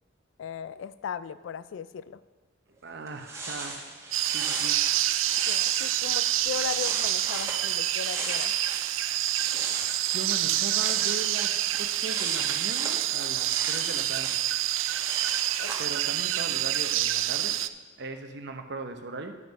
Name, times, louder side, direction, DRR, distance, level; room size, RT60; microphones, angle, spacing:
voice 1, 0.4-2.2 5.5-8.6 15.6-15.7, left 7 dB, 70° left, 16 dB, 0.3 m, -37 dB
sound 1, 2.8-2.9 3.1-8.9 9.2-15.8, right 2 dB, 15° right, 1.7 m, -38 dB
voice 2, 2.8-3.8 4.3-4.8 10.1-14.5 15.8-17.6 18.0-19.4, right 3 dB, 60° right, 6 dB, 0.9 m, -38 dB
sound 2, 4.1-17.7, right 13 dB, 80° right, 0.4 m, -27 dB
11.0 x 5.8 x 5.3 m, 1.5 s
head